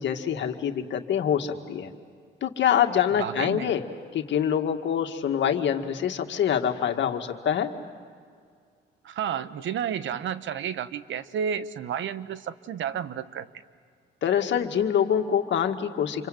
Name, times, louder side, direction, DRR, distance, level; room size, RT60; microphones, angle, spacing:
voice 1, 0.0-1.9 2.4-3.8 4.1-7.7 14.2-16.3, left 9 dB, 65° left, 5 dB, 2.0 m, -25 dB
voice 2, 3.2-3.7 9.0-13.5, right 8 dB, 70° right, 13 dB, 1.2 m, -31 dB
28.0 x 25.0 x 7.8 m, 2.2 s
cardioid pair, 90°, 20 cm